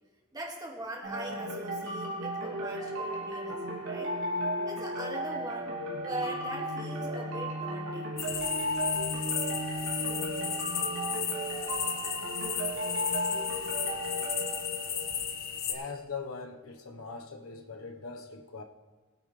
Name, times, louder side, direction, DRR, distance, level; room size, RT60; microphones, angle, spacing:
voice 1, 0.3-4.1 4.6-5.7 6.0-8.2, right 1 dB, 20° right, -1 dB, 2.2 m, -40 dB
sound 1, 1.0-15.5, equal, 80° right, 2.7 m, -34 dB
sound 2, 8.2-15.7, left 8 dB, 50° left, 1.2 m, -34 dB
voice 2, 15.7-18.6, left 4 dB, 90° left, 4 dB, 1.2 m, -41 dB
21.0 x 9.0 x 3.3 m, 1.3 s
head